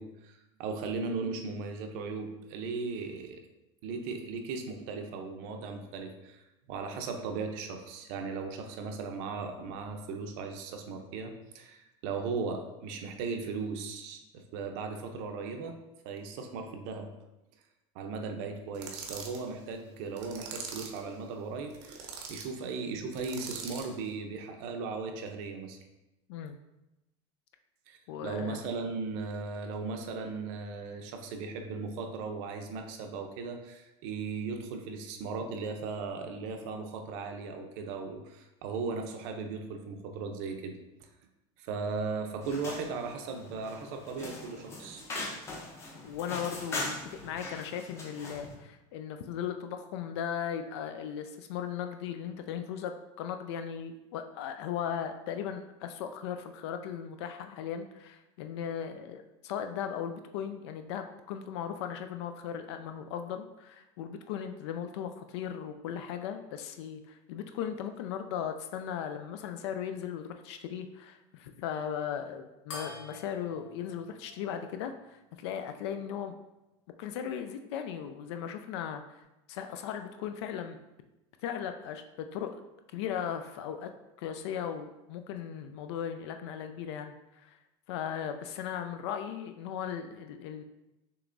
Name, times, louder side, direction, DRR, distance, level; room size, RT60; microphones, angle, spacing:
voice 1, 0.0-3.4 3.8-15.8 16.0-17.1 17.9-25.8 27.9-40.8 41.6-45.0, right 4 dB, 50° right, 5 dB, 0.6 m, -37 dB
sound 1, 18.7-19.4 20.2-21.0 21.7-22.5 23.1-23.9, right 5 dB, 85° right, 0.9 m, -42 dB
voice 2, 28.1-28.6 46.0-76.4 77.0-79.2 79.5-80.8 81.4-82.6 82.9-83.9 84.2-87.6 87.9-90.6, left 8 dB, 70° left, 7 dB, 0.4 m, -37 dB
sound 2, 42.4-48.5, left 2 dB, 15° left, 0.6 m, -41 dB
sound 3, 72.7-75.5, left 3 dB, 85° left, 1.2 m, -48 dB
6.7 x 3.0 x 2.5 m, 0.97 s
supercardioid pair, 170°, 15 cm